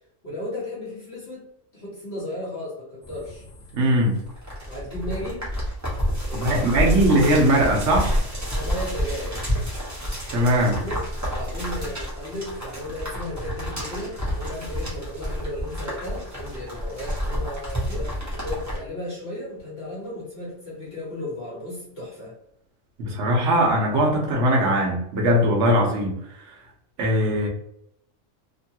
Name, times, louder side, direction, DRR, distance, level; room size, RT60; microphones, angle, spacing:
voice 1, 0.2-1.5 1.7-3.4 4.7-5.5 6.2-7.3 8.5-9.4 10.6-11.0 11.3-22.3, left 1 dB, 50° left, -6 dB, 1.3 m, -35 dB
sound 1, 3.0-18.8, equal, 15° right, 0.9 m, -29 dB
voice 2, 3.7-4.2 6.3-8.2 10.3-10.8 23.0-26.1 26.4-26.5 27.0-27.5, right 1 dB, 75° right, 0 dB, 1.1 m, -20 dB
3.0 x 2.3 x 2.7 m, 0.75 s
omnidirectional pair, 1.3 m